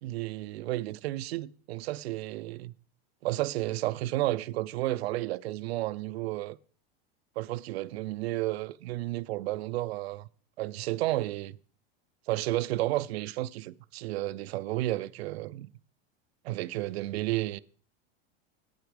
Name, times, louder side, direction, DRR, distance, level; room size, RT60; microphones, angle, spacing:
voice 1, 0.0-2.7 3.2-6.6 7.4-10.3 10.6-11.6 12.3-15.7 16.4-17.6, right 17 dB, 80° right, 0.5 m, -32 dB
8.9 x 8.0 x 5.0 m
supercardioid pair, 135°, 31 cm